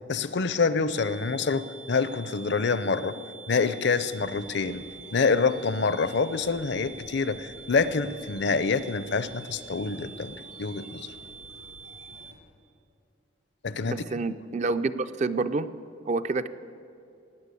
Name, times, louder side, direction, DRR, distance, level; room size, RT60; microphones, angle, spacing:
voice 1, 0.1-3.2 3.5-4.8 5.1-10.3 10.6-11.1 13.6-14.0, left 4 dB, 60° left, 14 dB, 0.6 m, -26 dB
sound 1, 0.9-12.3, right 5 dB, 70° right, 1.4 m, -46 dB
sound 2, 4.0-12.4, right 1 dB, 90° right, 5.2 m, -53 dB
voice 2, 13.9-15.7 16.1-16.5, right 3 dB, 35° right, 11 dB, 0.4 m, -28 dB
18.0 x 9.0 x 8.3 m, 2.5 s
head